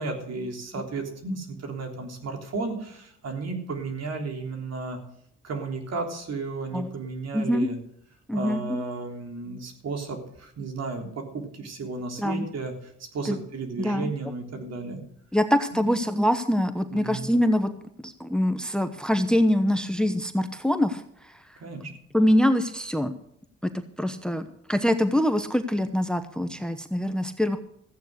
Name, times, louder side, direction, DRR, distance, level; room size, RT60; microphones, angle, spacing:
voice 1, 0.0-5.0 5.4-7.8 8.3-12.7 13.1-15.0 15.7-15.9 16.9-17.3 21.6-21.9, right 3 dB, 60° right, 3 dB, 3.5 m, -33 dB
voice 2, 7.3-7.7 8.3-8.8 12.2-12.5 13.2-13.4 13.8-14.1 15.3-17.7 18.0-21.3 22.1-23.1 24.0-27.6, equal, 5° left, 10 dB, 0.9 m, -24 dB
14.5 x 8.9 x 6.6 m, 0.71 s
cardioid pair, 90°, 30 cm